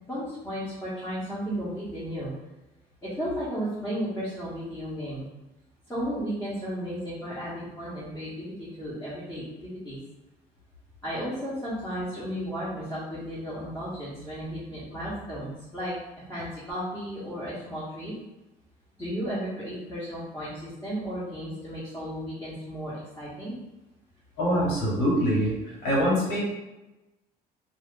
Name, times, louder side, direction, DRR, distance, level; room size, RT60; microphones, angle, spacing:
voice 1, 0.1-2.3 3.0-5.3 5.9-10.0 11.0-15.9 16.3-18.1 19.0-23.5, equal, 10° left, -10 dB, 1.0 m, -34 dB
voice 2, 24.4-25.5 25.8-26.4, equal, 85° left, -6 dB, 1.3 m, -24 dB
2.5 x 2.3 x 3.6 m, 0.99 s
cardioid pair, 110°, 17 cm